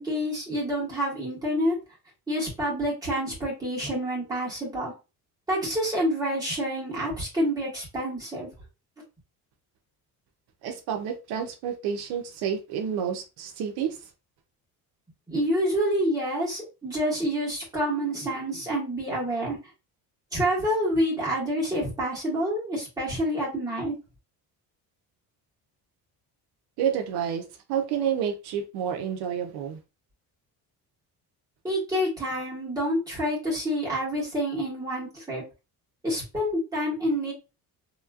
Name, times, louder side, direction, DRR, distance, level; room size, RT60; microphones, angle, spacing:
voice 1, 0.0-1.8 2.3-4.9 5.5-8.5 15.3-19.6 20.3-23.9 31.6-35.4 36.0-37.3, equal, 10° right, 1.7 m, -28 dB
voice 2, 10.6-14.1 26.8-29.8, right 8 dB, 80° right, 0.7 m, -29 dB
3.1 x 3.0 x 2.3 m
cardioid pair, 165°, 38 cm